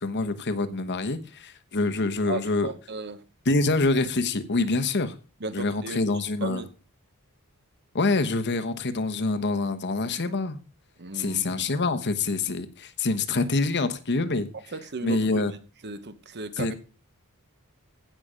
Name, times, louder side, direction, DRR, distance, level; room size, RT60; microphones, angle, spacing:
voice 1, 0.0-2.7 3.4-5.1 5.5-6.6 7.9-10.6 11.1-14.5 15.0-15.5 16.6-16.7, left 3 dB, 50° left, 1.0 m, -26 dB
voice 2, 2.3-3.2 5.4-6.7 11.0-11.4 14.7-15.5 15.8-16.7, right 3 dB, 50° right, 1.1 m, -35 dB
15.5 x 5.9 x 5.0 m
head